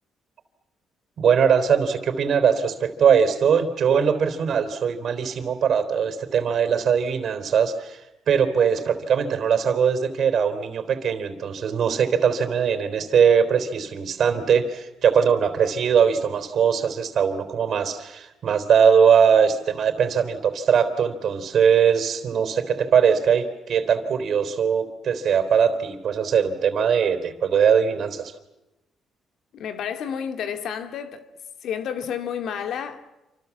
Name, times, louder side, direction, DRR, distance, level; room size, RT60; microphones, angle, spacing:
voice 1, 1.2-28.3, right 7 dB, 60° right, 3.8 m, -21 dB
voice 2, 29.5-31.3 31.6-33.1, left 8 dB, 75° left, 2.4 m, -30 dB
28.0 x 26.5 x 7.3 m
cardioid pair, 90°, 0 cm